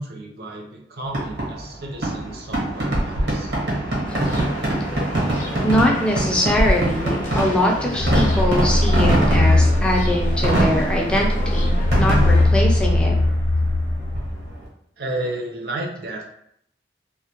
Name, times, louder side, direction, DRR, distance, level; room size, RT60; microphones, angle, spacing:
voice 1, 0.0-3.5 15.0-16.2, right 1 dB, 60° right, 0 dB, 0.5 m, -32 dB
Fireworks, 1.1-14.6, right 1 dB, 80° right, 0.9 m, -24 dB
sound 1, 4.0-12.5, left 1 dB, 45° left, 0.6 m, -34 dB
voice 2, 5.6-13.2, left 1 dB, 5° left, -2 dB, 0.3 m, -22 dB
sound 2, 7.9-14.5, left 1 dB, 85° left, 0.4 m, -20 dB
2.1 x 2.1 x 2.8 m, 0.72 s
head